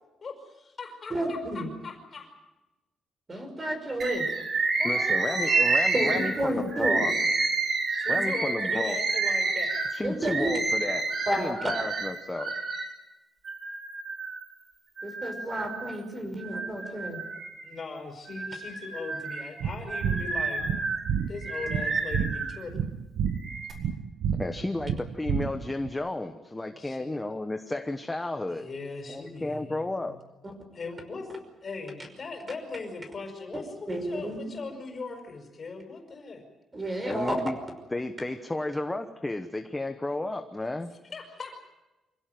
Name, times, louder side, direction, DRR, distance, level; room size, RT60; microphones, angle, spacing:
voice 1, 0.2-2.3 4.8-5.6 7.9-9.8 17.6-20.6 21.3-22.7 26.8-27.2 28.5-30.2 30.7-31.3 31.6-36.4 41.1-41.7, left 4 dB, 35° left, 4 dB, 5.3 m, -39 dB
voice 2, 1.1-1.7 3.3-4.3 5.9-7.1 10.0-10.5 11.3-11.6 15.0-17.2 33.9-34.4 36.7-37.3, right 1 dB, 20° right, 6 dB, 5.6 m, -31 dB
Bird, 4.0-12.9 13.4-14.4 15.0-16.0 16.4-17.8 18.3-22.6 23.3-23.7, right 3 dB, 40° right, 4.7 m, -29 dB
voice 3, 4.8-7.1 8.1-9.0 9.9-11.1 11.4-12.5 24.4-28.7 29.1-30.2 37.0-37.6 37.9-40.9, left 2 dB, 10° left, 7 dB, 1.1 m, -32 dB
sound 1, 19.6-25.9, right 7 dB, 65° right, 1.0 m, -30 dB
26.5 x 16.5 x 9.3 m, 1.1 s
cardioid pair, 150°, 0 cm